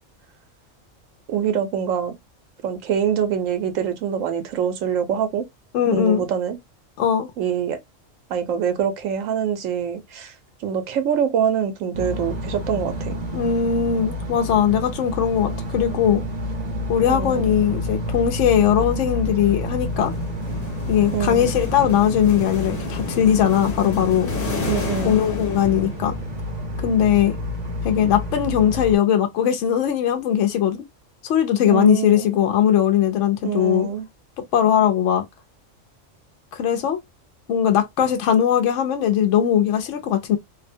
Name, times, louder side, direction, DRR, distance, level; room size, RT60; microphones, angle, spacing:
voice 1, 1.3-2.1 2.6-5.4 5.9-6.6 7.4-7.8 8.3-10.3 10.6-13.2 17.1-17.5 21.1-21.5 24.7-25.2 31.6-32.3 33.4-34.1, right 8 dB, 80° right, 1.1 m, -24 dB
voice 2, 5.7-6.2 7.0-7.3 13.3-16.2 16.9-20.1 20.9-24.3 25.0-26.1 26.8-27.3 27.8-30.8 31.2-33.9 34.5-35.2 36.5-37.0 37.5-40.4, left 9 dB, 70° left, 0.9 m, -19 dB
sound 1, 11.9-28.9, left 1 dB, 40° right, 0.6 m, -29 dB
sound 2, 19.9-26.4, left 4 dB, 50° left, 1.0 m, -32 dB
2.6 x 2.1 x 2.6 m
omnidirectional pair, 1.3 m